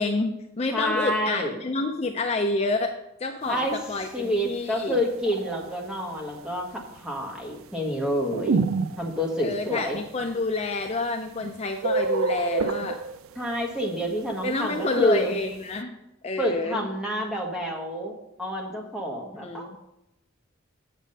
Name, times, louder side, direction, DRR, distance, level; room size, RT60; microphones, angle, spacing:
voice 1, 0.0-2.9 3.2-5.0 9.4-13.0 14.4-16.0 16.2-16.9 19.4-19.8, left 3 dB, 30° left, 4 dB, 0.5 m, -28 dB
voice 2, 0.7-1.5 3.5-3.7 4.1-8.7 9.0-10.0 13.3-15.3 16.4-19.8, equal, 5° right, -1 dB, 1.6 m, -28 dB
sound 1, 4.7-5.7 8.3-9.4 10.2-10.3 11.3-11.5 11.8-13.5 14.4-15.3, right 4 dB, 80° right, 0.4 m, -28 dB
7.6 x 7.3 x 5.4 m, 0.89 s
head